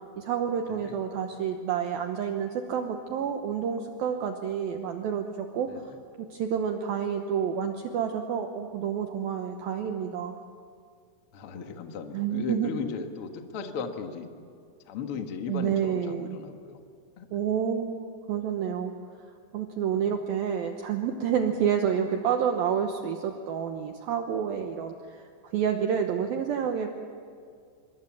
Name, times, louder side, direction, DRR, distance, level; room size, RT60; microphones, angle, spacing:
voice 1, 0.2-5.9 6.2-10.4 12.1-12.7 15.5-16.4 17.3-18.9 19.5-25.2 25.5-26.9, right 8 dB, 75° right, 5 dB, 2.3 m, -29 dB
voice 2, 0.7-1.0 5.7-6.0 11.3-14.3 14.9-16.8 17.2-17.3 20.0-20.1, left 6 dB, 85° left, 5 dB, 1.2 m, -36 dB
27.0 x 23.5 x 7.4 m, 2.2 s
omnidirectional pair, 5.4 m